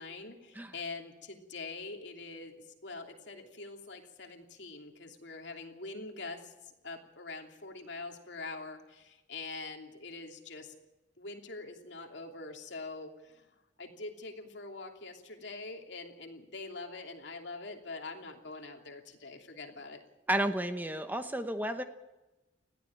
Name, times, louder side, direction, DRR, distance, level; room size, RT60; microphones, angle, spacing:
voice 1, 0.0-10.7 11.2-20.0, left 3 dB, 65° left, 3 dB, 2.9 m, -44 dB
voice 2, 20.3-21.8, right 1 dB, 10° right, 8 dB, 1.0 m, -32 dB
20.5 x 15.0 x 8.7 m, 1.0 s
head